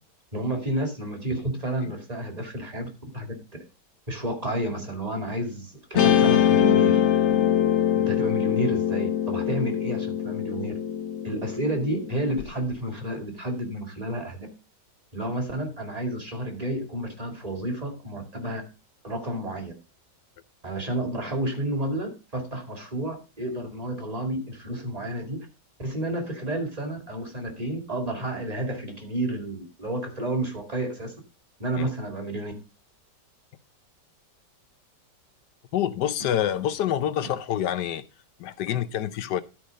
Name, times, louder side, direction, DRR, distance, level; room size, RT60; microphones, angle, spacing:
voice 1, 0.3-3.3 4.1-7.0 7.9-10.7 11.2-14.5 15.1-18.6 19.0-19.7 20.6-25.5 25.8-31.1 31.6-32.5, right 1 dB, 20° right, 2.2 m, -30 dB
Guitar, 6.0-12.4, left 9 dB, 50° left, 1.0 m, -23 dB
voice 2, 35.7-38.0 38.4-39.4, left 10 dB, 75° left, 1.3 m, -27 dB
12.5 x 4.8 x 5.0 m
omnidirectional pair, 1.9 m